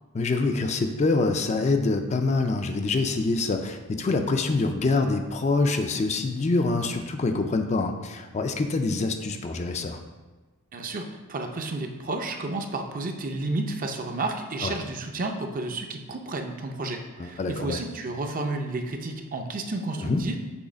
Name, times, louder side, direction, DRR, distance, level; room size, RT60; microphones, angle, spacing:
voice 1, 0.1-10.0 14.6-14.7 17.2-17.8 20.0-20.2, left 3 dB, 35° left, 6 dB, 0.4 m, -25 dB
voice 2, 10.7-20.4, right 2 dB, 40° right, 4 dB, 0.5 m, -31 dB
6.3 x 3.3 x 4.9 m, 1.2 s
head